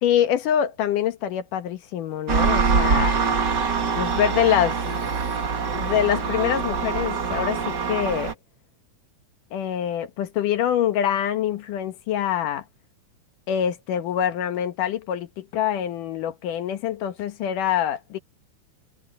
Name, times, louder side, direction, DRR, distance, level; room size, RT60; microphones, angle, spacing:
voice 1, 0.0-3.2 3.9-5.0 5.7-8.4 9.5-12.6 13.5-18.2, left 10 dB, 75° left, 2.8 m, -25 dB
Engine, 2.3-8.3, right 5 dB, 40° right, 1.9 m, -24 dB
omnidirectional pair, 3.8 m